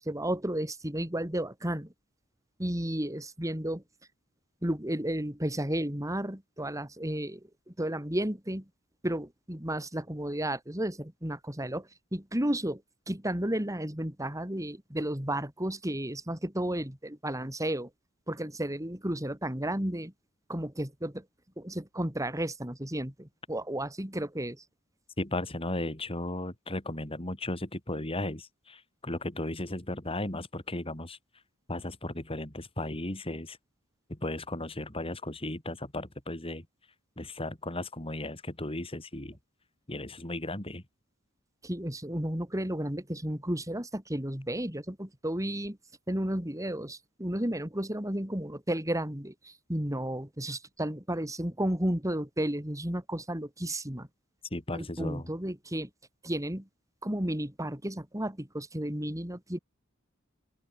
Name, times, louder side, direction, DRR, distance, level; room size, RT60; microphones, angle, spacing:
voice 1, 0.0-1.9 2.6-3.8 4.6-8.7 9.0-12.8 13.1-17.9 18.3-20.1 20.5-21.2 21.6-24.6 41.6-45.8 46.1-54.1 54.7-55.9 56.2-56.7 57.0-59.6, right 1 dB, 15° right, 3.6 m, -33 dB
voice 2, 25.2-31.2 31.7-33.6 34.1-36.7 37.2-39.4 39.9-40.8 54.5-55.3, left 1 dB, 25° left, 3.4 m, -35 dB
open air
head